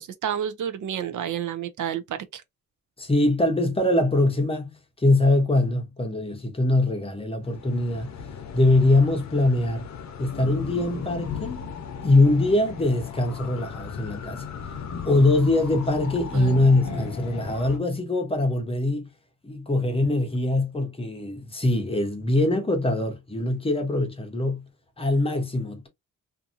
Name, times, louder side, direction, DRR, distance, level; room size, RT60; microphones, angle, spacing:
voice 1, 0.0-2.4 16.3-17.1, right 9 dB, 65° right, 0.5 m, -31 dB
voice 2, 3.0-4.7 5.0-8.1 8.5-9.9 10.2-11.7 12.0-14.5 15.0-19.1 19.4-24.6 25.0-25.9, left 2 dB, 15° left, 0.7 m, -22 dB
sound 1, 7.4-17.8, left 7 dB, 55° left, 0.7 m, -37 dB
2.6 x 2.6 x 2.4 m
wide cardioid pair, 145°, 33 cm